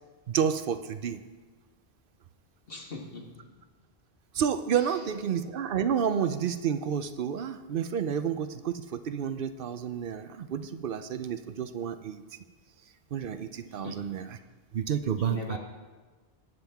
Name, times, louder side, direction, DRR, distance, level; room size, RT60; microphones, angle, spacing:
voice 1, 0.3-1.2 4.3-12.2 13.1-14.4 14.7-15.6, right 8 dB, 60° right, 10 dB, 0.7 m, -30 dB
voice 2, 2.7-3.5 4.8-4.9 13.7-14.0 15.0-15.6, left 3 dB, 60° left, 0 dB, 1.7 m, -41 dB
18.5 x 7.3 x 3.5 m, 1.3 s
omnidirectional pair, 1.1 m